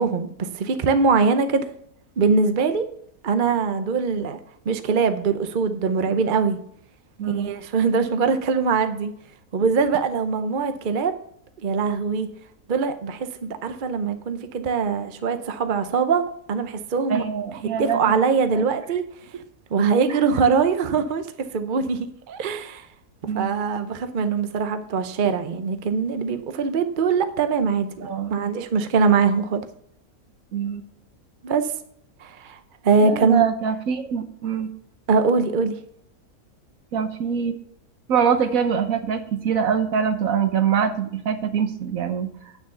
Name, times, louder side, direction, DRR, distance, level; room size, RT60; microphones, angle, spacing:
voice 1, 0.0-1.7 2.2-2.9 3.2-4.4 4.7-6.6 7.3-9.1 9.5-11.1 11.6-12.3 12.7-17.2 17.8-19.0 19.7-21.2 21.5-22.9 23.3-29.6 31.4-31.7 32.2-32.6 32.8-33.4 35.1-35.7, right 5 dB, 45° right, 0.7 m, -22 dB
voice 2, 7.2-7.5 17.1-18.2 18.5-18.7 20.1-20.2 23.2-23.5 28.0-28.4 30.5-30.8 33.0-34.7 36.9-37.6 38.1-42.3, right 7 dB, 65° right, 1.3 m, -24 dB
9.0 x 7.1 x 5.5 m
omnidirectional pair, 1.6 m